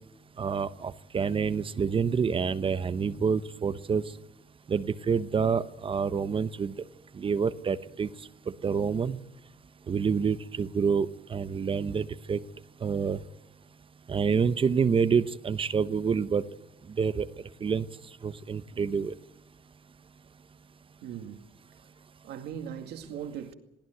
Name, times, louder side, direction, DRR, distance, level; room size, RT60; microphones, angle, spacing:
voice 1, 0.4-4.0 4.7-6.7 7.1-8.1 8.5-9.2 9.9-12.4 12.8-13.2 14.1-16.4 16.9-17.3 17.6-17.9 18.2-19.1, right 6 dB, 30° right, 0.9 m, -27 dB
voice 2, 21.0-21.5 22.2-23.5, right 8 dB, 75° right, 2.2 m, -39 dB
22.5 x 16.0 x 7.9 m
cardioid pair, 110°, 17 cm